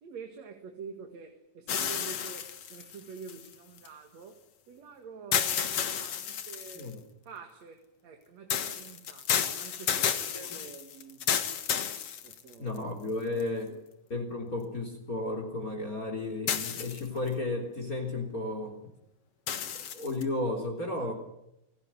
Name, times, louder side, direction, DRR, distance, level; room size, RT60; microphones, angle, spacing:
voice 1, 0.0-4.4 4.7-7.0 7.2-9.3 9.6-11.8 12.2-12.9 13.3-13.8, right 5 dB, 60° right, 5 dB, 3.1 m, -47 dB
sound 1, 1.7-3.9 5.3-6.9 8.5-12.8 13.4-13.5 16.5-17.3 19.5-20.2, left 8 dB, 55° left, 2.4 m, -31 dB
voice 2, 12.6-13.7 14.1-18.8 19.7-21.1, left 2 dB, 30° left, 4 dB, 3.8 m, -33 dB
29.0 x 16.5 x 9.9 m, 0.85 s
omnidirectional pair, 3.5 m